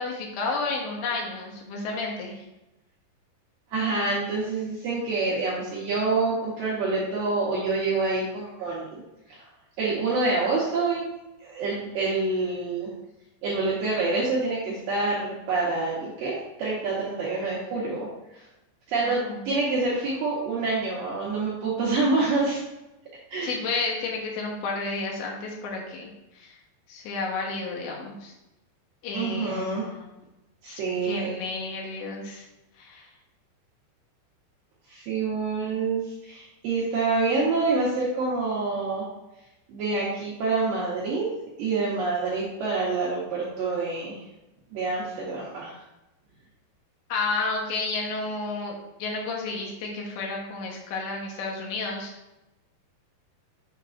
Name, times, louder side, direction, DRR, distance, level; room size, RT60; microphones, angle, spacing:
voice 1, 0.0-2.4 19.0-19.5 23.4-26.5 26.9-28.3 29.0-30.1 30.7-30.8 31.0-32.5 32.8-33.1 47.1-48.7 49.0-52.1, left 3 dB, 80° left, -1 dB, 3.3 m, -31 dB
voice 2, 3.7-9.0 9.3-9.4 9.8-11.0 11.4-12.9 13.4-18.1 18.3-18.4 18.9-22.6 23.3-23.6 29.1-29.8 30.6-31.3 34.9-39.1 39.7-41.3 41.6-44.2 44.7-45.8, right 3 dB, 75° right, -6 dB, 2.1 m, -27 dB
7.1 x 5.9 x 2.5 m, 0.97 s
omnidirectional pair, 5.2 m